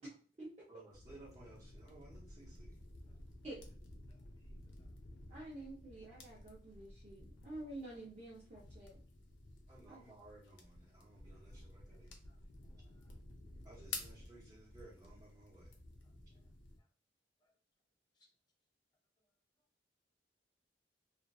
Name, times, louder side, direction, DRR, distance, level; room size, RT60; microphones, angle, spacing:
voice 1, 0.0-0.8 3.4-3.6 5.3-9.0 9.9-10.0, right 1 dB, 35° right, -6 dB, 0.6 m, -49 dB
voice 2, 0.7-2.8 9.7-12.2 13.6-15.7, right 2 dB, 20° right, -10 dB, 1.0 m, -58 dB
sound 1, 0.9-16.8, left 3 dB, 90° left, 0.5 m, -53 dB
voice 3, 4.1-4.9 5.3-5.4 11.9-12.0 12.3-12.4 12.6-13.1 16.0-16.1 17.4-17.5 18.2-18.3, left 1 dB, 25° left, 1 dB, 0.5 m, -77 dB
2.5 x 2.3 x 2.3 m, 0.42 s
head